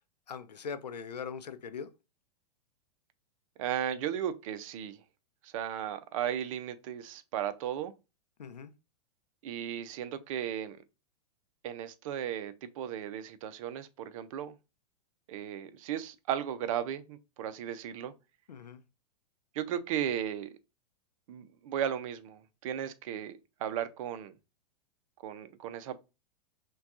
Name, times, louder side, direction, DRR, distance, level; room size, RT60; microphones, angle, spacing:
voice 1, 0.3-1.9 8.4-8.7 18.5-18.8, left 6 dB, 90° left, 0.5 m, -41 dB
voice 2, 3.6-5.0 5.4-7.9 9.4-10.8 11.6-14.5 15.3-18.1 19.5-20.5 21.3-24.3 25.2-26.0, right 10 dB, 55° right, 0.6 m, -35 dB
5.8 x 2.3 x 2.5 m
hypercardioid pair, 110°, 20 cm